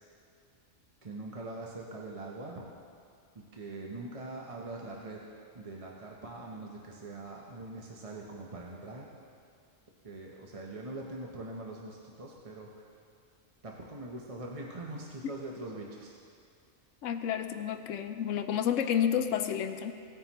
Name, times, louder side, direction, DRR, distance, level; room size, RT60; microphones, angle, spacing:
voice 1, 1.0-2.7 3.3-5.2 5.5-9.1 10.0-12.9 13.6-16.2, right 2 dB, 30° right, -2 dB, 0.8 m, -43 dB
voice 2, 17.0-19.9, left 9 dB, 75° left, 8 dB, 1.0 m, -30 dB
17.5 x 9.4 x 3.0 m, 2.4 s
omnidirectional pair, 1.4 m